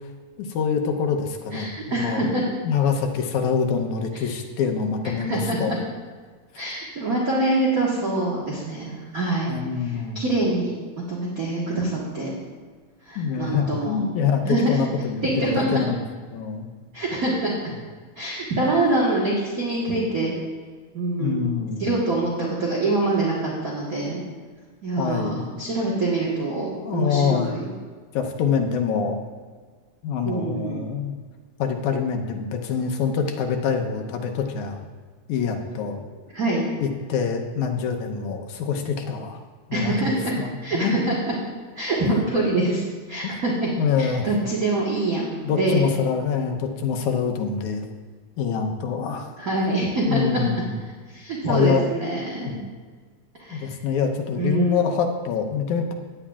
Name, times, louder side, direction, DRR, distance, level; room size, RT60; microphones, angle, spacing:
voice 1, 0.4-2.3 2.6-5.7 9.5-10.2 13.2-16.0 16.3-16.7 21.2-21.9 25.0-25.5 26.8-27.6 28.1-29.2 30.0-31.2 31.6-34.8 35.3-36.0 36.8-39.4 39.7-40.9 42.0-42.2 43.2-43.3 43.8-44.3 45.4-47.8 48.4-49.3 50.1-50.8 51.5-51.8 52.4-52.5 53.5-55.9, left 6 dB, 85° left, 4 dB, 2.3 m, -25 dB
voice 2, 1.5-2.4 5.3-5.8 6.5-9.5 10.1-10.7 11.1-12.3 13.0-14.1 14.4-14.8 15.2-15.8 16.9-17.5 18.2-20.3 20.9-21.4 21.8-23.4 23.6-24.2 24.8-27.7 30.2-30.8 36.3-36.6 39.7-40.3 40.6-41.1 41.8-43.7 44.0-45.8 49.4-50.4 51.1-52.6 53.4-53.7 54.4-54.8, right 2 dB, 40° right, -5 dB, 1.5 m, -25 dB
15.5 x 9.9 x 2.4 m, 1.5 s
omnidirectional pair, 3.4 m